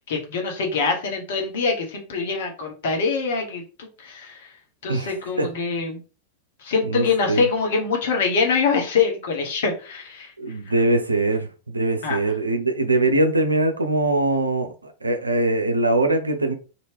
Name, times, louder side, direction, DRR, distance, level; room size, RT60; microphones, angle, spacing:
voice 1, 0.1-4.5 4.8-6.0 6.6-10.3 10.7-10.8 12.0-12.2, left 5 dB, 55° left, 1.1 m, -24 dB
voice 2, 6.9-7.4 10.4-11.5 11.7-14.7 15.0-16.5, right 2 dB, 80° right, 0.6 m, -22 dB
2.8 x 2.6 x 3.3 m
figure-of-eight pair, 90°, 0 cm